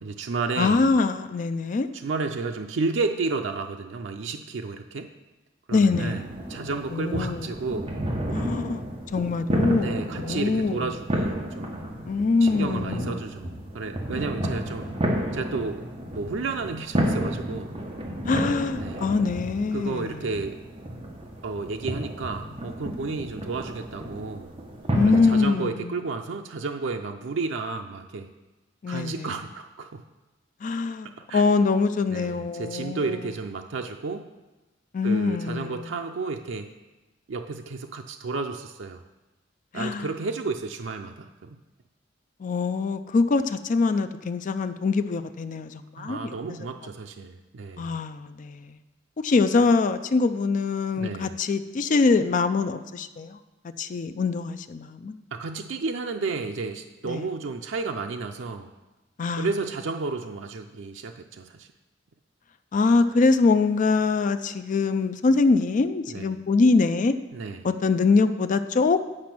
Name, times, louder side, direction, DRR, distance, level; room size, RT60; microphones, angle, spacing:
voice 1, 0.0-0.9 1.9-5.1 5.7-7.9 9.8-11.9 12.4-14.9 15.3-15.8 16.1-17.7 18.8-19.0 19.7-20.6 21.4-24.5 25.1-28.3 28.9-30.0 31.3-31.5 32.1-34.3 35.0-36.7 37.3-39.0 39.7-41.6 46.0-48.0 51.0-51.4 55.3-58.7 59.4-61.7 66.1-66.3 67.3-67.6, right 4 dB, 85° right, 0.5 m, -32 dB
voice 2, 0.6-1.9 5.7-6.3 6.9-7.5 8.3-8.8 9.1-10.8 12.1-13.2 18.2-20.3 24.9-25.9 28.8-29.3 30.6-33.2 34.9-35.8 39.7-40.1 42.4-46.4 47.8-48.8 49.2-53.4 53.8-55.2 57.1-57.3 59.2-59.5 62.7-67.1 67.6-69.0, left 4 dB, 45° left, 0.4 m, -24 dB
sound 1, 5.9-25.4, equal, 30° right, 1.3 m, -31 dB
8.8 x 5.1 x 6.0 m
head